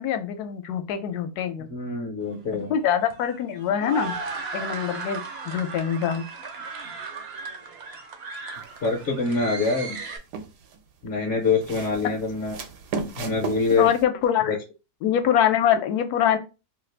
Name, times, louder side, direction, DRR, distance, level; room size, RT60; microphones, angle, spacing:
voice 1, 0.0-1.7 2.5-4.1 4.5-6.2 13.8-14.5 15.0-16.4, left 9 dB, 75° left, 9 dB, 1.1 m, -24 dB
voice 2, 1.7-2.7 8.8-10.0 11.0-12.6 13.1-13.9 14.5-14.6, left 4 dB, 55° left, 1 dB, 0.7 m, -25 dB
sound 1, 2.2-10.2, right 4 dB, 65° right, 0.6 m, -36 dB
sound 2, 8.6-9.0 9.6-10.8 11.4-14.0, right 5 dB, 90° right, 1.2 m, -35 dB
2.8 x 2.4 x 3.2 m, 0.29 s
omnidirectional pair, 1.7 m